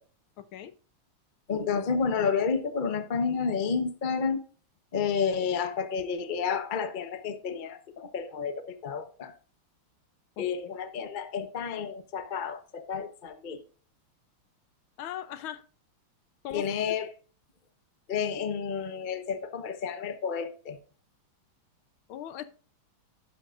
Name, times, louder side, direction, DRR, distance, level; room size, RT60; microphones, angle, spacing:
voice 1, 0.4-0.7 10.4-10.5 15.0-15.6 16.4-16.7 22.1-22.4, left 11 dB, 75° left, 1.5 m, -38 dB
voice 2, 1.5-4.4 4.9-9.3 10.4-13.6 16.5-17.1 18.1-20.8, left 6 dB, 40° left, 0.7 m, -30 dB
11.5 x 10.0 x 2.5 m
omnidirectional pair, 2.4 m